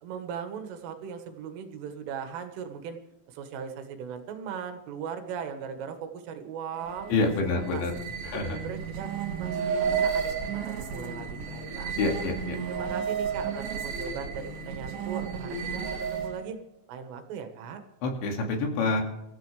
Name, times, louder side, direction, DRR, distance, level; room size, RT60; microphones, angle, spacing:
voice 1, 0.0-3.0 3.3-7.8 8.3-9.1 9.3-10.3 10.7-12.0 12.7-16.6 16.9-17.8, right 7 dB, 80° right, 6 dB, 3.9 m, -38 dB
sound 1, 6.7-16.5, right 6 dB, 55° right, 3.3 m, -32 dB
voice 2, 7.1-7.9 8.2-8.6 12.0-12.6 18.0-19.0, left 3 dB, 70° left, 2 dB, 4.4 m, -27 dB
24.5 x 14.5 x 3.3 m, 0.87 s
omnidirectional pair, 5.8 m